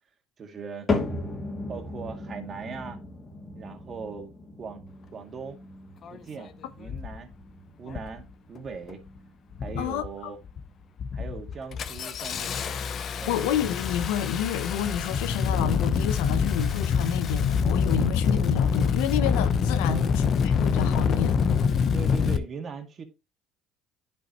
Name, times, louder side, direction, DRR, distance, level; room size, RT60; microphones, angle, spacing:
voice 1, 0.4-0.9 1.7-3.0 3.6-4.3 4.6-4.9 5.1-5.6 6.1-7.3 7.8-9.0 9.6-10.4 11.1-12.6 13.2-13.4 19.8-20.2 21.9-23.0, right 5 dB, 40° right, 2.0 m, -39 dB
sound 1, 0.9-17.2 17.5-18.0 18.6-18.7 19.6-19.7, left 3 dB, 30° left, 2.5 m, -38 dB
Engine starting, 6.0-6.1 6.9-7.2 7.9-8.2 8.6-9.1 9.5-10.1 10.5-10.7 11.0-22.4, left 6 dB, 50° left, 0.9 m, -26 dB
voice 2, 13.3-21.4, left 8 dB, 85° left, 0.8 m, -29 dB
10.5 x 5.6 x 3.0 m
supercardioid pair, 85°, 0 cm